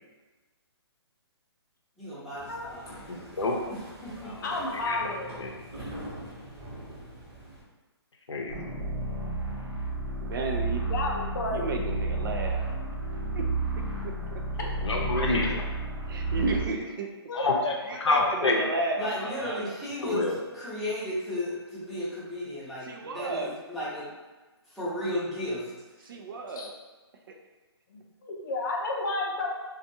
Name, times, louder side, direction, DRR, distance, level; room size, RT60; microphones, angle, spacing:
voice 1, 2.0-2.8 3.7-4.5 19.0-20.3 20.5-24.1 24.7-25.7, left 1 dB, ahead, -13 dB, 0.7 m, -34 dB
sound 1, 2.4-7.6, right 1 dB, 30° right, 0.9 m, -44 dB
voice 2, 3.1-3.6 4.2-4.5 4.8-5.1 5.4-5.5 8.3-8.7 14.8-15.7 17.3-18.6 19.2-19.3 20.0-20.4, left 3 dB, 90° left, 0 dB, 0.6 m, -28 dB
voice 3, 4.4-5.3 9.5-9.6 10.8-11.7 15.2-15.3 17.3-17.7 18.0-18.3 26.6-26.7 27.9-29.5, left 2 dB, 45° left, -1 dB, 0.6 m, -32 dB
sound 2, 8.5-16.7, right 2 dB, 70° right, 0.9 m, -31 dB
voice 4, 10.2-10.9 11.5-12.8 13.3-13.5 13.8-13.9 14.3-14.4 16.1-17.1 17.9-19.7 22.8-23.5 26.0-26.7, right 3 dB, 50° right, 2 dB, 0.4 m, -33 dB
2.5 x 2.3 x 2.6 m, 1.2 s
hypercardioid pair, 150°, 14 cm